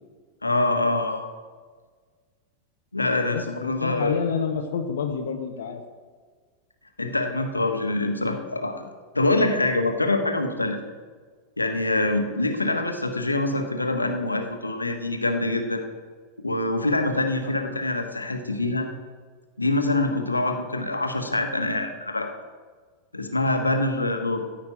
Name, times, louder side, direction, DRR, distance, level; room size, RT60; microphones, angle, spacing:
voice 1, 0.4-1.2 2.9-4.2 7.0-8.8 9.1-10.8 11.6-15.8 16.4-18.9 19.6-22.3 23.1-24.4, left 2 dB, 80° left, 5 dB, 1.4 m, -25 dB
voice 2, 3.3-5.8 17.4-17.5, left 6 dB, 60° left, 3 dB, 1.1 m, -28 dB
15.0 x 5.8 x 9.1 m, 1.5 s
figure-of-eight pair, 90°, 0 cm